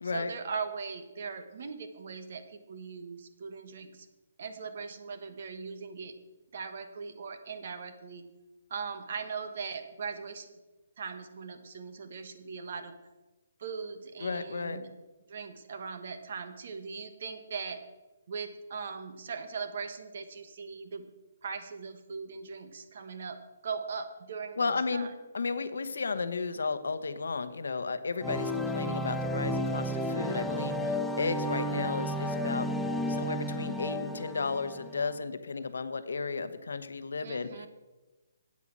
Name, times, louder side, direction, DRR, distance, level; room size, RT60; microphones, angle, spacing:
voice 1, 0.1-4.1 4.4-6.1 6.5-8.2 8.7-10.6 11.0-12.9 13.6-14.9 15.3-17.8 18.3-21.0 21.4-23.4 23.6-25.1 37.2-37.7, right 5 dB, 45° right, 9 dB, 1.2 m, -39 dB
voice 2, 14.2-14.8 24.6-25.1 25.3-32.7 33.1-37.7, left 4 dB, 85° left, 12 dB, 1.0 m, -33 dB
sound 1, 28.2-35.1, equal, ahead, 0.4 m, -32 dB
8.6 x 8.1 x 7.5 m, 1.1 s
hypercardioid pair, 175°, 0 cm